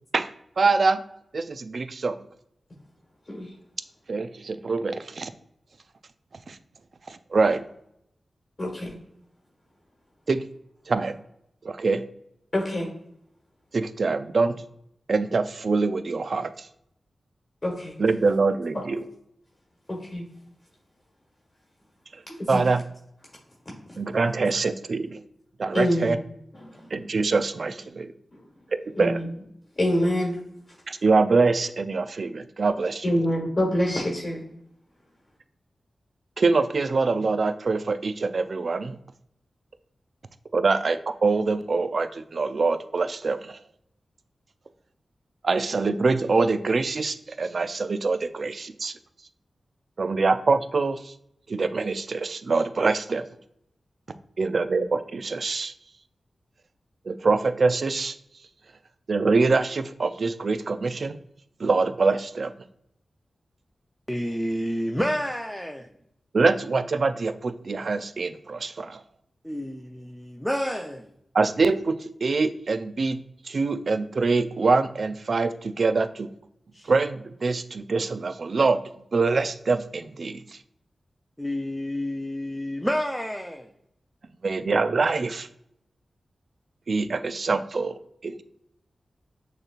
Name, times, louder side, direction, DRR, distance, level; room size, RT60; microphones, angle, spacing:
voice 1, 0.6-1.0 1.3-2.2 4.1-5.3 6.5-6.6 7.1-7.6 10.3-10.4 10.9-11.2 11.6-12.0 13.7-14.6 15.1-16.7 18.0-19.1 22.5-22.8 24.0-25.2 25.6-26.2 26.9-28.1 29.0-29.2 30.9-33.1 36.4-39.0 40.5-43.6 45.4-48.9 50.0-51.1 51.5-53.2 54.4-55.7 57.1-58.2 59.1-61.2 61.6-62.5 66.3-69.0 71.3-73.2 73.4-76.3 76.9-78.8 79.1-80.4 84.4-85.5 86.9-88.4, right 4 dB, 60° right, 0.3 m, -24 dB
voice 2, 8.6-8.9 12.5-12.9 17.6-17.9 18.7-18.8 19.9-20.2 22.3-22.6 25.7-26.1 26.5-26.9 28.3-28.4 29.0-29.3 29.8-30.4 33.0-34.5, equal, 35° left, 1.2 m, -26 dB
voice 3, 64.1-65.8 69.4-71.1 76.7-76.9 81.4-83.7, equal, 5° left, 0.4 m, -29 dB
6.5 x 3.0 x 2.4 m
cardioid pair, 65°, 0 cm